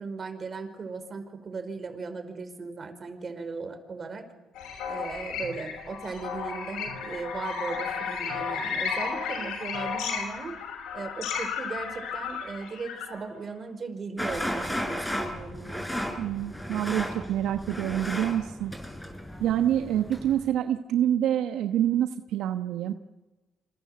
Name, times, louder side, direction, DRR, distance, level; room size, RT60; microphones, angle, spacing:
voice 1, 0.0-4.3 4.9-10.6 10.9-14.8 15.1-15.9, right 4 dB, 40° right, 8 dB, 5.0 m, -37 dB
sound 1, 4.5-13.2, left 6 dB, 90° left, 5.6 m, -33 dB
sound 2, 14.2-20.5, equal, 5° left, 6.3 m, -34 dB
voice 2, 16.2-18.7 19.4-22.9, right 11 dB, 85° right, 8 dB, 1.1 m, -26 dB
28.0 x 26.5 x 7.9 m, 1.1 s
cardioid pair, 90°, 0 cm